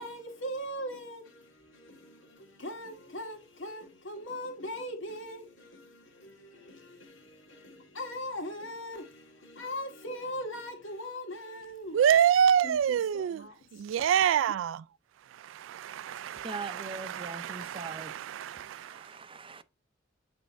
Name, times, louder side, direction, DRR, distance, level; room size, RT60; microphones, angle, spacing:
voice 1, 0.0-12.0 12.6-14.1, equal, 85° left, 2.0 m, -40 dB
voice 2, 11.9-14.8 15.8-19.2, right 9 dB, 85° right, 0.3 m, -27 dB
voice 3, 16.4-19.6, right 3 dB, 30° right, 0.5 m, -42 dB
8.8 x 3.4 x 4.2 m
head